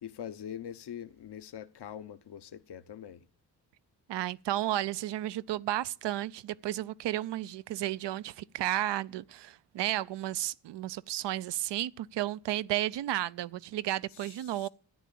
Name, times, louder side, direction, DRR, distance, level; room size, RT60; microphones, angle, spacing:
voice 1, 0.0-3.3 14.1-14.7, left 9 dB, 70° left, 1.0 m, -43 dB
voice 2, 4.1-14.7, right 14 dB, 80° right, 0.6 m, -33 dB
13.5 x 10.0 x 8.5 m
cardioid pair, 50°, 42 cm